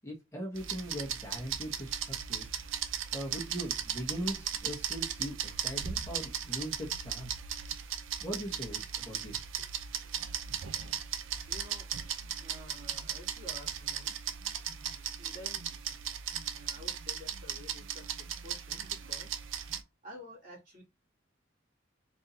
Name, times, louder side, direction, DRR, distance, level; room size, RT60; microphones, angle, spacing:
voice 1, 0.0-2.5 3.1-7.3 8.2-9.7, equal, 15° left, -2 dB, 1.2 m, -40 dB
sound 1, 0.6-19.8, right 8 dB, 85° right, 0.6 m, -37 dB
voice 2, 11.5-11.9 12.4-14.2 15.2-15.6 16.5-20.8, left 1 dB, 45° right, -4 dB, 2.6 m, -51 dB
4.0 x 3.5 x 2.7 m, 0.23 s
head